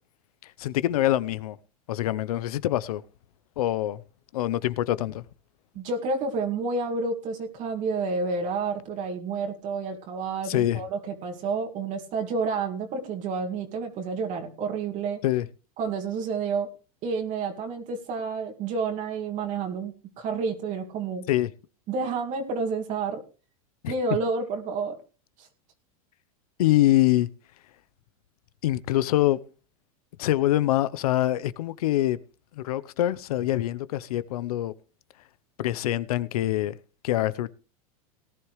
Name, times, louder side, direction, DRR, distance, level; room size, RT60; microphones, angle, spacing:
voice 1, 0.4-1.6 1.9-3.0 3.6-4.0 4.3-5.2 10.5-10.8 15.2-15.4 21.3-21.5 23.8-23.9 26.6-27.3 28.6-29.4 30.2-32.2 32.6-34.7 35.6-36.7 37.0-37.5, left 14 dB, 75° left, 0.8 m, -24 dB
voice 2, 5.7-15.2 15.8-16.7 17.0-21.3 21.9-23.2 23.9-25.0 25.4-25.5, right 4 dB, 40° right, 2.3 m, -30 dB
18.5 x 11.0 x 3.2 m
supercardioid pair, 130°, 19 cm